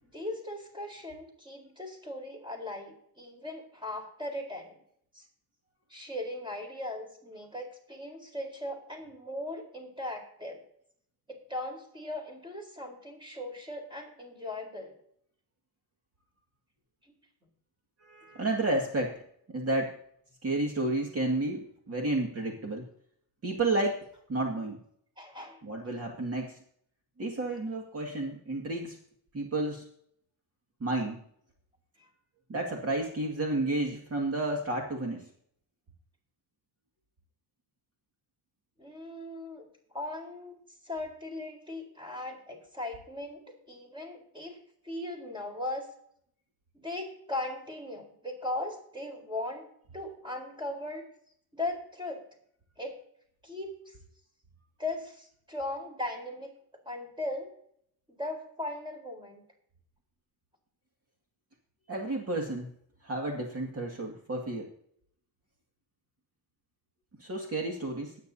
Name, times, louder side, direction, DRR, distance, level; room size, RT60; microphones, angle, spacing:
voice 1, 0.0-4.8 5.1-5.2 5.9-10.6 11.3-15.0 17.0-17.1 25.2-25.6 32.0-32.1 38.8-39.7 39.9-40.6 40.8-44.6 44.8-45.9 46.7-51.0 51.5-52.2 52.8-53.0 53.4-53.9 54.8-56.5 56.9-57.5 58.1-59.4, left 1 dB, 10° right, 2 dB, 4.2 m, -38 dB
voice 2, 18.0-19.2 19.5-20.0 20.4-22.8 23.4-24.8 25.6-26.6 27.2-29.0 29.3-29.9 30.8-31.2 32.5-35.3 61.9-62.7 63.0-64.7 67.2-68.2, right 2 dB, 35° right, 0 dB, 2.2 m, -31 dB
21.0 x 9.5 x 2.8 m, 0.66 s
cardioid pair, 125°, 38 cm